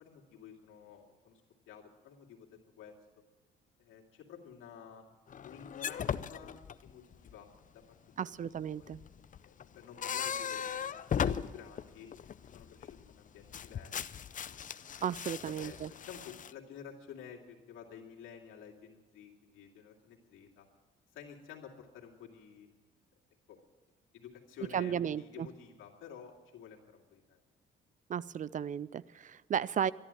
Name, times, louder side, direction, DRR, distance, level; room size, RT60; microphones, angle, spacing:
voice 1, 0.0-3.0 3.8-5.1 5.4-8.2 8.7-8.9 9.4-12.1 12.4-14.6 15.6-20.7 21.1-22.7 23.5-23.6 24.1-27.4, left 7 dB, 85° left, -1 dB, 2.5 m, -52 dB
sound 1, 5.3-7.3 8.8-13.1 13.4-16.5, left 8 dB, 40° left, 0.5 m, -38 dB
voice 2, 8.2-9.0 15.0-15.9 24.7-25.5 28.1-29.9, right 8 dB, 40° right, 21 dB, 0.4 m, -34 dB
13.0 x 11.0 x 8.8 m, 1.3 s
cardioid pair, 90°, 20 cm